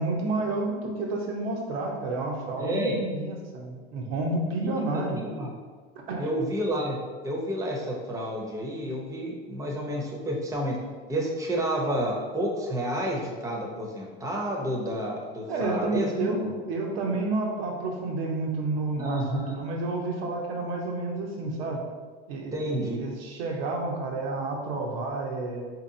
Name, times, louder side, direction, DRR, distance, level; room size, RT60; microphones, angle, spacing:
voice 1, 0.0-5.2 6.1-6.3 15.5-21.8 22.3-25.7, right 2 dB, 80° right, 1 dB, 0.8 m, -30 dB
voice 2, 2.6-3.0 4.6-5.5 6.2-7.0 7.2-10.8 11.1-16.4 19.0-19.6 22.5-23.0, equal, 10° right, -1 dB, 0.6 m, -30 dB
4.1 x 2.8 x 2.6 m, 1.5 s
supercardioid pair, 110°, 30 cm